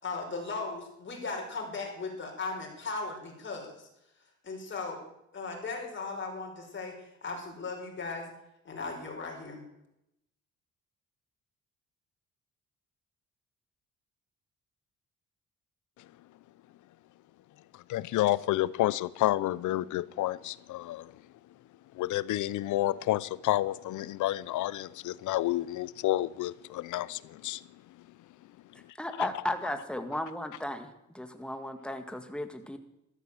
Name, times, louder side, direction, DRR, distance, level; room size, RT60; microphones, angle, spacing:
voice 1, 0.0-3.9 4.4-5.0 5.3-7.0 7.2-8.3 8.7-9.6, left 3 dB, 40° left, 5.6 m, -37 dB
voice 2, 17.9-21.1 22.0-27.6 29.2-29.3, left 15 dB, 80° left, 0.7 m, -30 dB
voice 3, 29.0-30.9 31.1-32.8, left 1 dB, 5° left, 1.9 m, -35 dB
13.0 x 13.0 x 7.8 m
cardioid pair, 90°, 30 cm